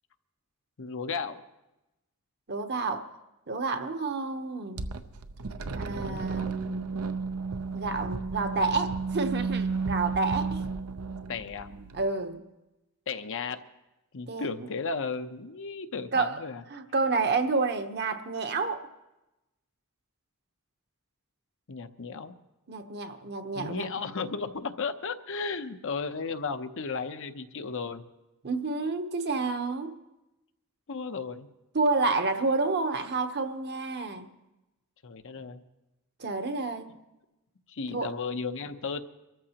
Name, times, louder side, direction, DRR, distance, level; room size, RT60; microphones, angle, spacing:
voice 1, 0.8-1.4 5.9-6.2 11.3-11.7 13.1-13.6 14.1-16.6 21.7-22.3 23.5-28.0 30.9-31.5 35.0-35.6 37.7-39.0, left 4 dB, 65° left, 8 dB, 0.8 m, -34 dB
voice 2, 2.5-3.1 3.5-4.9 5.7-6.9 7.7-10.6 11.9-12.4 14.3-14.7 16.1-16.4 16.7-18.9 22.7-23.9 28.4-29.9 31.7-34.3 36.2-36.9 37.9-38.1, right 3 dB, 50° right, 7 dB, 1.0 m, -29 dB
sound 1, 4.8-12.1, right 4 dB, 85° right, 0.7 m, -33 dB
24.5 x 13.5 x 2.9 m, 0.97 s
head